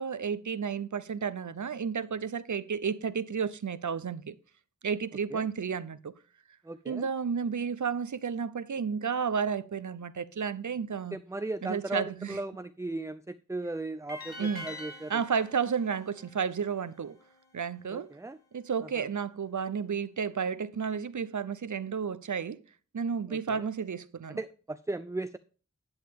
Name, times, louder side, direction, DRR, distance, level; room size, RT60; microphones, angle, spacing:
voice 1, 0.0-4.4 4.8-6.1 6.9-11.2 11.6-12.4 14.4-14.7 15.1-17.2 17.5-18.1 18.5-22.6 22.9-24.4, right 6 dB, 85° right, 0.6 m, -32 dB
voice 2, 6.6-7.1 11.1-15.2 17.9-18.4 19.0-19.1 23.3-23.7 24.3-25.4, right 2 dB, 10° right, 0.4 m, -37 dB
sound 1, 14.1-17.2, left 1 dB, 30° left, 3.3 m, -45 dB
10.5 x 8.7 x 3.5 m
wide cardioid pair, 45°, 29 cm